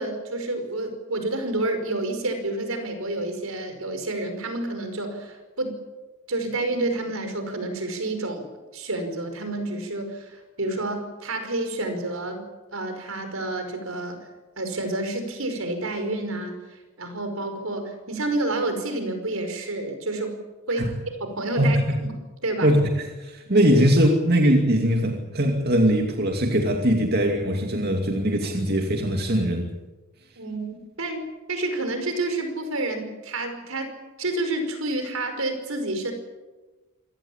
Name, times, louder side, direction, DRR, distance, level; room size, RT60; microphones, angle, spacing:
voice 1, 0.0-5.7 6.3-8.5 8.7-12.4 12.7-14.2 14.6-16.5 17.0-20.3 20.7-20.9 21.2-22.1 22.4-22.7 30.4-36.1, right 2 dB, 80° right, 7 dB, 5.3 m, -29 dB
voice 2, 21.6-22.0 22.6-29.7, equal, 50° right, 3 dB, 2.5 m, -21 dB
27.0 x 18.0 x 8.7 m, 1.2 s
head